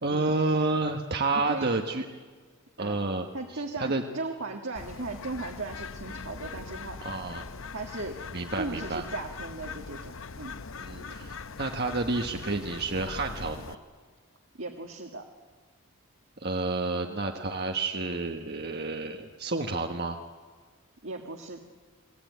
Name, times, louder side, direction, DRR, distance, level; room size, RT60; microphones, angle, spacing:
voice 1, 0.0-2.0 2.8-3.3 3.5-4.0 7.0-7.5 8.3-9.0 10.8-13.8 16.4-20.2, right 3 dB, 45° right, 4 dB, 1.3 m, -30 dB
voice 2, 1.3-1.7 2.8-3.0 3.3-7.0 7.7-8.2 8.6-10.6 14.6-15.2 21.0-21.6, right 3 dB, 60° right, 1 dB, 1.8 m, -37 dB
Bird, 4.8-13.8, left 4 dB, 65° left, 0.8 m, -41 dB
29.0 x 20.5 x 9.3 m, 1.5 s
head